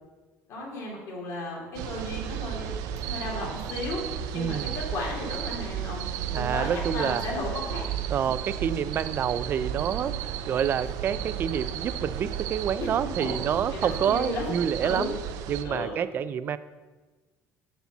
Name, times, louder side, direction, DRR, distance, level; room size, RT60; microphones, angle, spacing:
voice 1, 0.5-4.0 4.3-7.9 8.2-8.3 12.8-12.9 13.2-13.4 13.7-15.1 15.6-16.0, left 1 dB, 50° left, -3 dB, 2.6 m, -34 dB
sound 1, 1.7-15.6, right 9 dB, 80° right, 0.6 m, -34 dB
voice 2, 4.3-4.7 6.3-7.2 8.1-10.2 10.5-15.2 15.5-16.6, right 8 dB, 35° right, 14 dB, 0.4 m, -28 dB
10.5 x 4.2 x 7.0 m, 1.3 s
cardioid pair, 155°, 6 cm